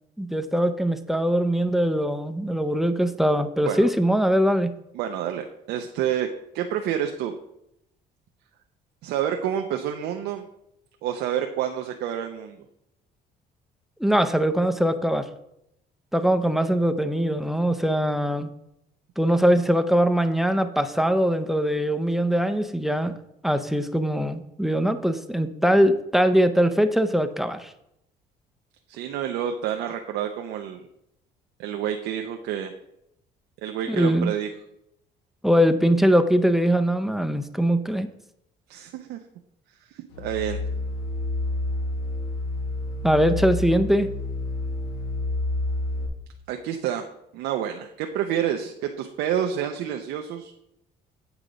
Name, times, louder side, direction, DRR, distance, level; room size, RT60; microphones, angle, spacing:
voice 1, 0.2-4.7 14.0-15.3 16.1-18.5 19.2-23.2 23.4-27.7 33.9-34.3 35.4-38.1 43.0-44.1, equal, ahead, 10 dB, 0.5 m, -22 dB
voice 2, 4.9-6.3 6.5-7.4 9.0-10.5 11.0-12.6 28.9-30.8 31.6-32.7 33.6-34.5 38.7-39.2 39.9-40.6 46.5-47.1 47.3-50.5, right 10 dB, 85° right, 5 dB, 0.5 m, -28 dB
sound 1, 40.1-46.1, left 2 dB, 90° left, 1.3 m, -29 dB
8.3 x 4.9 x 3.9 m, 0.82 s
cardioid pair, 110°, 17 cm